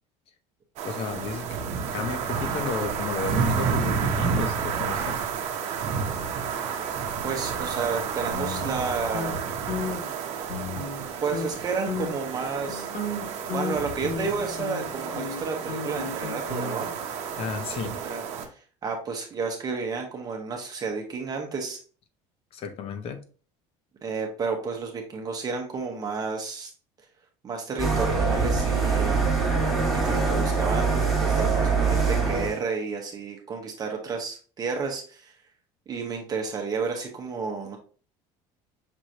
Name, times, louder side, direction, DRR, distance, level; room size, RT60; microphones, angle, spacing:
voice 1, 0.8-1.6 1.9-5.2 17.4-18.0 22.5-23.2, left 6 dB, 45° left, 0.8 m, -33 dB
sound 1, 0.8-18.5, right 6 dB, 55° right, 0.9 m, -30 dB
voice 2, 7.2-9.4 11.2-12.9 13.5-16.9 17.8-21.8 24.0-26.7 27.4-29.3 29.9-35.3 35.9-37.8, right 4 dB, 30° right, 0.9 m, -31 dB
sound 2, 8.3-9.3 9.7-10.1 10.5-11.0 11.3-11.5 11.9-12.3 12.7-17.0, left 3 dB, 60° left, 2.2 m, -34 dB
sound 3, 27.8-32.6, right 4 dB, ahead, 1.6 m, -23 dB
6.1 x 3.0 x 2.7 m
cardioid pair, 140°, 13 cm